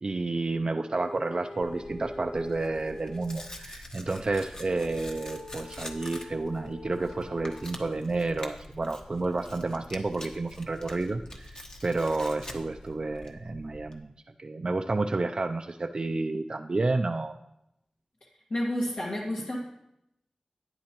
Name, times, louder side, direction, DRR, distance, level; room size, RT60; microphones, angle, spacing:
voice 1, 0.0-14.1 14.4-17.3, right 3 dB, 50° right, 5 dB, 0.4 m, -30 dB
sound 1, 0.9-3.5 4.7-8.0, left 2 dB, 90° left, 2.1 m, -44 dB
Tearing, 1.6-14.0, left 1 dB, 35° left, 1.1 m, -45 dB
voice 2, 18.5-19.6, left 1 dB, 65° left, -4 dB, 1.6 m, -30 dB
11.5 x 9.7 x 3.0 m, 0.83 s
wide cardioid pair, 70°, 2 cm